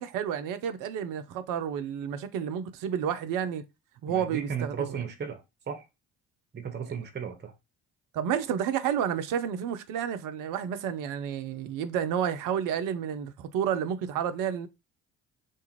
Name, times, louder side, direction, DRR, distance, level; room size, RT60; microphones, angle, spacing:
voice 1, 0.0-3.6 4.0-5.0 8.1-14.7, right 8 dB, 50° right, 0.6 m, -30 dB
voice 2, 4.1-5.8 6.5-7.5, right 6 dB, 25° right, 0.9 m, -35 dB
2.5 x 2.4 x 2.9 m
figure-of-eight pair, 45°, 43 cm